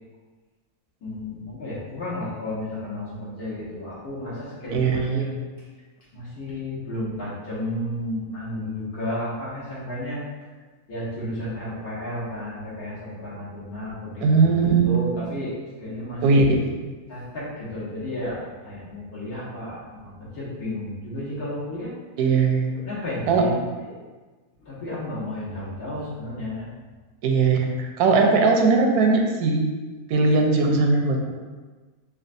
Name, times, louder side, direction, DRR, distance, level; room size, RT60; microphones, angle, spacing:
voice 1, 1.0-5.3 6.1-10.2 10.9-16.4 17.1-21.9 22.8-23.9 24.6-26.7, left 1 dB, 80° left, -9 dB, 1.8 m, -32 dB
voice 2, 4.7-5.3 14.2-15.0 16.2-16.7 22.2-22.7 23.3-23.4 27.2-29.7 30.1-31.3, right 4 dB, 80° right, 2 dB, 1.1 m, -19 dB
5.4 x 2.3 x 2.6 m, 1.3 s
omnidirectional pair, 1.6 m